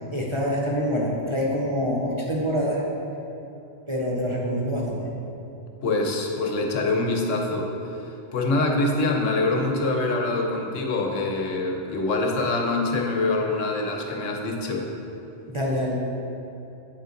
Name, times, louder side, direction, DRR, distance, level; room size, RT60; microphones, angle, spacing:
voice 1, 0.1-2.8 3.9-5.1 15.5-15.9, equal, 30° right, -4 dB, 0.6 m, -26 dB
voice 2, 5.8-14.9, left 2 dB, 85° left, 2 dB, 1.2 m, -25 dB
8.3 x 5.4 x 3.9 m, 2.9 s
omnidirectional pair, 1.3 m